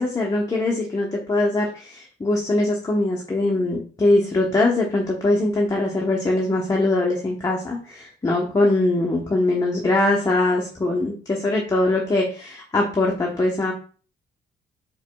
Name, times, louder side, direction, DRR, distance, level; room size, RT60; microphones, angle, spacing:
voice 1, 0.0-13.7, left 2 dB, 15° left, -2 dB, 0.9 m, -22 dB
4.6 x 4.5 x 2.2 m, 0.40 s
cardioid pair, 90°, 20 cm